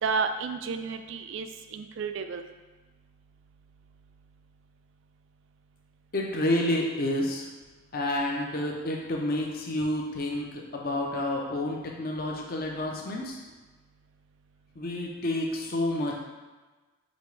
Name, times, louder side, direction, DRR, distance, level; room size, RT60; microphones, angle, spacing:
voice 1, 0.0-2.4, right 5 dB, 60° right, 7 dB, 0.3 m, -31 dB
voice 2, 6.1-7.4 7.9-13.4 14.8-16.1, left 1 dB, 45° left, -1 dB, 0.6 m, -29 dB
5.1 x 2.9 x 3.2 m, 1.2 s
head